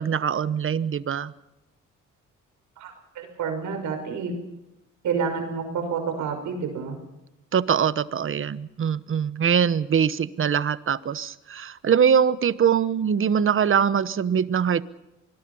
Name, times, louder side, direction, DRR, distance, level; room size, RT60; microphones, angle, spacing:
voice 1, 0.0-1.3 7.5-14.8, right 7 dB, 45° right, 1.1 m, -23 dB
voice 2, 2.8-4.3 5.0-7.0, right 6 dB, 75° right, 6.2 m, -29 dB
25.5 x 21.0 x 5.6 m
cardioid pair, 90°, 30 cm